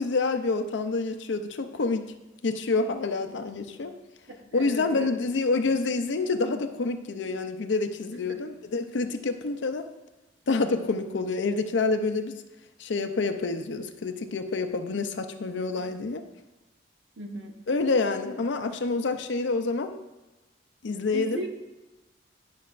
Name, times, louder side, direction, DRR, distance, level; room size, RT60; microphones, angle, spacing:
voice 1, 0.0-2.1 2.4-3.9 4.5-9.8 10.5-12.4 12.8-16.2 17.7-20.0 20.8-21.4, left 3 dB, 75° left, 7 dB, 0.6 m, -27 dB
voice 2, 4.5-5.1 17.2-17.5 21.1-21.5, right 1 dB, 85° right, 2 dB, 1.1 m, -35 dB
11.5 x 5.6 x 2.5 m, 1.0 s
head